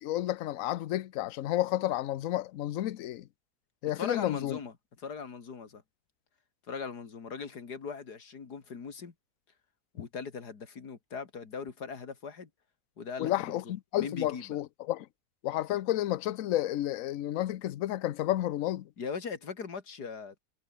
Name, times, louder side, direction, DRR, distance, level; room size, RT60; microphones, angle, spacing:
voice 1, 0.0-3.3 3.8-4.6 13.2-15.1 15.4-18.9, left 14 dB, 65° left, 1.0 m, -31 dB
voice 2, 3.9-5.8 6.7-9.1 9.9-12.5 13.0-14.6 19.0-20.3, left 5 dB, 90° left, 2.9 m, -40 dB
omnidirectional pair, 1.7 m